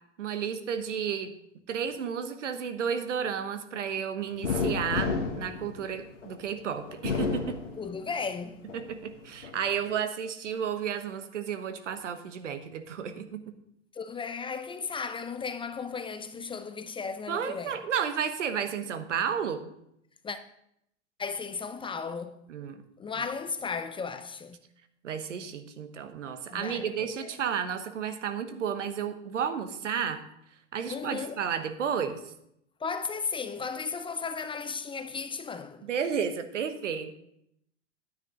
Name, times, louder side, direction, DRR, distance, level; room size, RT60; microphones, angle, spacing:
voice 1, 0.2-1.3 1.7-7.6 8.7-13.5 17.3-19.7 22.5-22.8 25.0-30.2 30.7-32.2 35.8-37.1, right 7 dB, 80° right, 1.2 m, -32 dB
sound 1, 4.4-6.3 6.9-8.2 8.7-9.6, left 5 dB, 90° left, 1.5 m, -31 dB
voice 2, 7.8-8.7 13.9-17.8 20.2-20.4 21.2-22.4 23.0-24.6 26.5-27.3 30.9-31.5 32.8-35.9, left 5 dB, 15° left, 0.5 m, -35 dB
10.5 x 9.6 x 3.8 m
hypercardioid pair, 100°, 36 cm